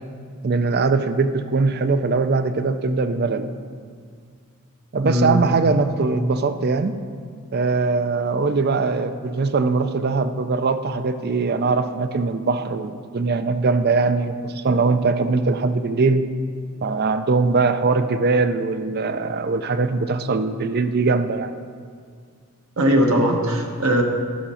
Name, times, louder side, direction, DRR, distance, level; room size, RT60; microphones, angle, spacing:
voice 1, 0.4-3.5 4.9-7.0 7.5-16.2 16.8-21.5, right 4 dB, 45° right, 10 dB, 0.5 m, -21 dB
voice 2, 5.0-5.4 22.8-24.0, equal, 70° right, 2 dB, 1.3 m, -19 dB
11.5 x 6.7 x 5.6 m, 2.1 s
head